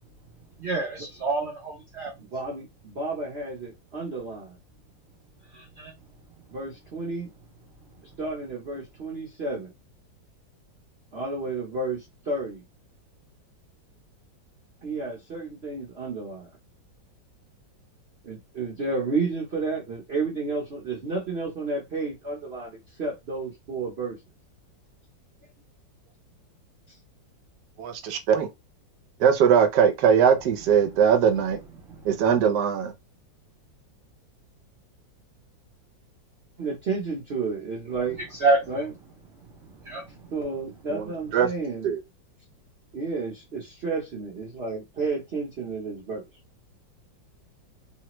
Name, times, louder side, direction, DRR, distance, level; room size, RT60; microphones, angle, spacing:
voice 1, 0.6-2.1 5.5-5.9 31.9-32.4 38.4-38.7 39.8-40.2, right 3 dB, 85° right, 0.5 m, -27 dB
voice 2, 2.2-4.6 6.5-7.3 8.2-9.7 11.1-12.6 14.8-16.5 18.2-24.2 36.6-38.2 38.7-38.9 40.3-41.9 42.9-46.2, right 3 dB, 50° right, 0.8 m, -31 dB
voice 3, 27.8-28.5 29.2-31.6 32.1-32.9 40.9-41.0 41.3-41.5 41.8-42.0, right 7 dB, 70° right, 1.1 m, -20 dB
3.2 x 2.1 x 2.9 m
omnidirectional pair, 2.0 m